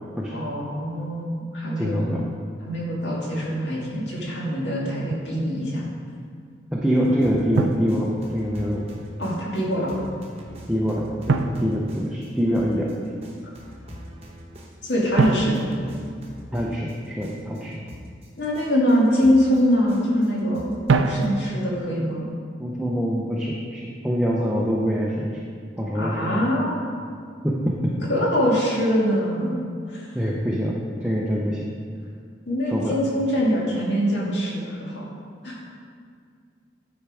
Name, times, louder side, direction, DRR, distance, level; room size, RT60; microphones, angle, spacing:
voice 1, 0.3-2.1 2.6-5.8 9.2-10.0 14.8-15.7 18.4-20.6 21.1-22.3 25.9-26.8 28.1-29.6 29.9-30.1 32.5-35.0 35.4-35.6, equal, 65° left, -5 dB, 2.0 m, -23 dB
voice 2, 1.8-2.2 6.7-8.9 10.7-12.9 16.5-17.8 22.6-25.3 25.8-26.4 27.4-27.9 30.1-31.7 32.7-33.0, equal, 5° right, -4 dB, 0.6 m, -25 dB
Drum, 5.1-5.4 7.6-8.7 11.3-12.7 15.2-16.9 20.9-21.8, right 3 dB, 85° right, 0.4 m, -26 dB
sound 1, 7.0-21.3, equal, 30° right, 1.0 m, -43 dB
10.0 x 4.6 x 4.8 m, 2.1 s
head